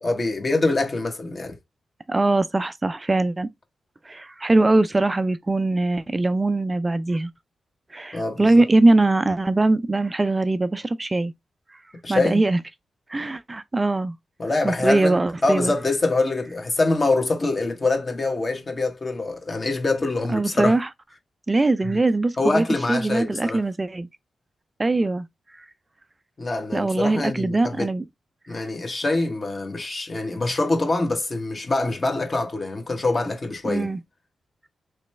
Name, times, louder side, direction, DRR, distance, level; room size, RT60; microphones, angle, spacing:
voice 1, 0.0-1.6 8.1-8.5 12.0-12.4 14.4-20.8 21.8-21.9 22.4-23.6 26.4-27.9 28.5-33.9, left 2 dB, 45° left, 1.2 m, -24 dB
voice 2, 2.1-3.5 4.1-7.3 7.9-11.3 12.1-12.6 13.1-14.1 14.6-15.7 20.3-20.9 21.5-24.1 24.8-25.3 25.6-25.7 26.7-28.1 33.6-34.0, right 2 dB, 30° right, 0.3 m, -21 dB
3.2 x 3.0 x 3.2 m
supercardioid pair, 50°, 0 cm